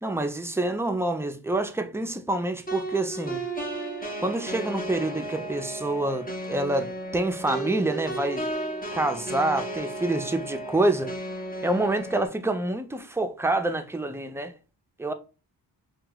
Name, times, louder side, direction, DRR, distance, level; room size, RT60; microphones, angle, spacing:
voice 1, 0.0-3.4 4.2-8.4 8.9-11.1 11.6-14.5 15.0-15.1, right 2 dB, 5° right, 0.6 m, -27 dB
sound 1, 2.7-12.3, right 1 dB, 20° left, 1.2 m, -34 dB
2.8 x 2.8 x 3.8 m
cardioid pair, 40°, 44 cm